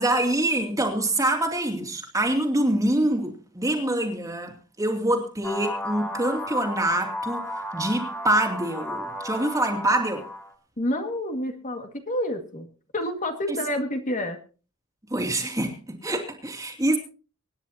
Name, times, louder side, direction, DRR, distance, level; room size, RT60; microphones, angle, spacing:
voice 1, 0.0-7.4 7.7-10.3 13.5-13.6 15.1-17.0, right 1 dB, 15° right, 2.6 m, -25 dB
sound 1, 5.4-10.5, left 1 dB, 10° left, 2.7 m, -34 dB
voice 2, 10.8-12.7 12.9-14.4, left 1 dB, 35° left, 2.0 m, -28 dB
25.0 x 10.5 x 2.8 m
head